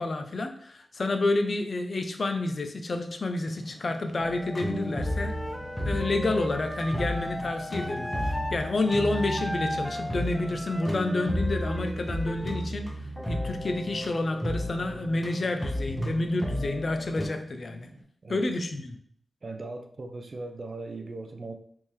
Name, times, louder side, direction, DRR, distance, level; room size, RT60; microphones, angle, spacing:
voice 1, 0.0-5.3 5.8-12.9 13.3-17.9 18.3-19.0, left 2 dB, 60° left, 6 dB, 0.5 m, -29 dB
sound 1, 3.4-18.0, right 1 dB, 80° right, 0.9 m, -49 dB
sound 2, 4.2-17.3, equal, 20° left, 0.9 m, -33 dB
Wind instrument woodwind instrument, 5.0-8.6 8.9-12.7, equal, ahead, 0.5 m, -37 dB
voice 2, 19.4-21.5, right 2 dB, 55° right, 5 dB, 0.5 m, -38 dB
3.5 x 2.7 x 3.1 m, 0.63 s
cardioid pair, 40°, 0 cm